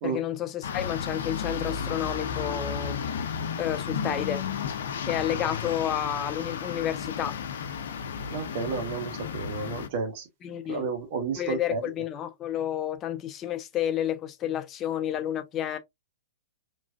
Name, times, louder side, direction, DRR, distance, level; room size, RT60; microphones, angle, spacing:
voice 1, 0.0-3.3 3.6-4.4 5.1-7.4 10.4-10.9 11.3-15.8, left 10 dB, 25° left, 0.8 m, -30 dB
sound 1, 0.6-9.9, left 6 dB, 60° left, 0.8 m, -33 dB
voice 2, 8.3-10.3 10.7-11.8, right 5 dB, 50° right, 1.6 m, -31 dB
4.8 x 3.2 x 2.3 m
figure-of-eight pair, 110°, 0 cm